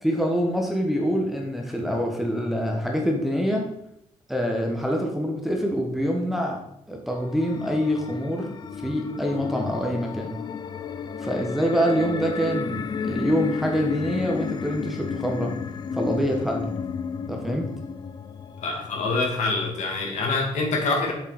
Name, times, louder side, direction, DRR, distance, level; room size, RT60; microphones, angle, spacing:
voice 1, 0.0-3.7 4.3-6.6 6.9-8.5 8.8-10.3 11.2-15.5 15.9-16.7 17.3-17.7, equal, ahead, 0 dB, 1.0 m, -25 dB
sound 1, 7.1-19.1, left 6 dB, 30° left, 0.4 m, -33 dB
voice 2, 18.6-21.1, left 3 dB, 60° left, 1 dB, 2.1 m, -25 dB
7.8 x 7.1 x 4.0 m, 0.77 s
cardioid pair, 160°, 14 cm